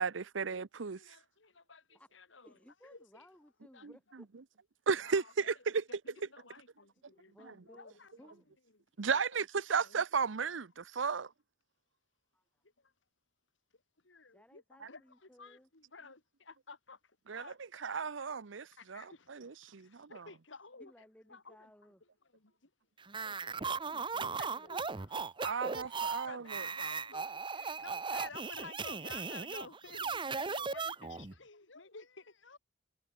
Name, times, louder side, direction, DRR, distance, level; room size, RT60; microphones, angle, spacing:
voice 1, 0.0-1.1 3.8-3.9 4.9-5.8 9.0-11.3 17.3-20.3 25.4-26.7, right 5 dB, 85° right, 0.8 m, -34 dB
voice 2, 1.0-2.6 2.8-3.3 3.7-3.9 5.0-5.5 5.9-8.3 9.1-9.5 9.8-10.0 12.8-12.9 14.0-17.6 18.7-20.9 21.3-21.7 22.3-22.7 23.1-23.8 24.2-25.2 25.8-32.6, left 4 dB, 80° left, 2.7 m, -53 dB
voice 3, 2.4-4.3 7.1-8.5 12.3-12.4 14.3-15.7 20.8-22.0 23.6-24.9, equal, 5° left, 6.2 m, -61 dB
sound 1, 23.1-31.4, right 5 dB, 25° right, 0.8 m, -37 dB
head